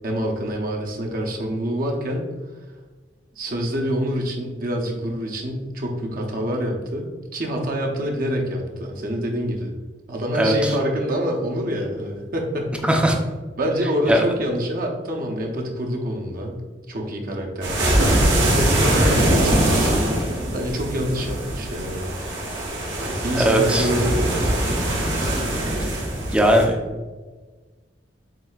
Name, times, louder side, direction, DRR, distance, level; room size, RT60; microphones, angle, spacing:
voice 1, 0.0-2.3 3.3-9.7 10.1-12.8 13.6-16.6 16.9-20.2 20.5-22.0 23.1-24.4, equal, 50° right, 1 dB, 0.8 m, -26 dB
sound 1, 17.6-26.6, right 1 dB, 70° right, 1.1 m, -22 dB
voice 2, 23.4-23.9 26.3-26.7, equal, 5° right, 1 dB, 0.5 m, -18 dB
7.5 x 2.7 x 2.4 m, 1.3 s
head